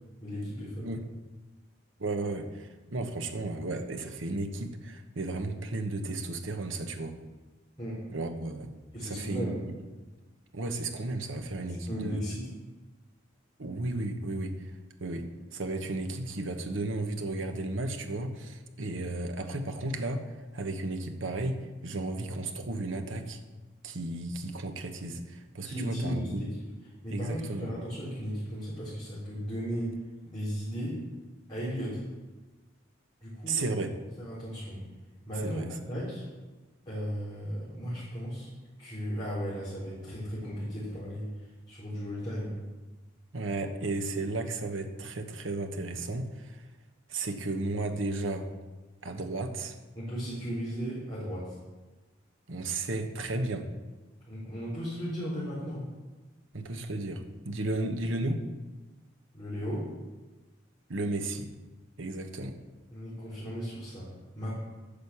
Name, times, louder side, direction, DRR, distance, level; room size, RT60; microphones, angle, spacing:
voice 1, 0.2-0.9 7.8-8.0 8.9-9.6 11.9-12.5 25.6-26.7 27.0-29.9 30.3-31.0 31.5-32.0 33.2-33.7 34.2-34.8 35.3-36.2 36.9-38.5 38.8-42.6 49.9-51.6 54.3-55.8 59.3-59.8 62.9-64.1 64.3-64.6, equal, 20° left, -12 dB, 4.3 m, -35 dB
voice 2, 2.0-7.1 8.1-8.7 9.0-9.5 10.5-12.2 13.6-14.6 15.0-20.2 20.5-23.4 23.8-26.4 27.1-27.7 33.5-33.9 35.4-35.7 43.3-46.6 47.1-48.5 49.0-49.7 52.5-53.7 56.5-58.4 60.9-61.5 62.0-62.6, right 2 dB, 75° right, 6 dB, 1.1 m, -34 dB
10.5 x 6.4 x 7.1 m, 1.2 s
head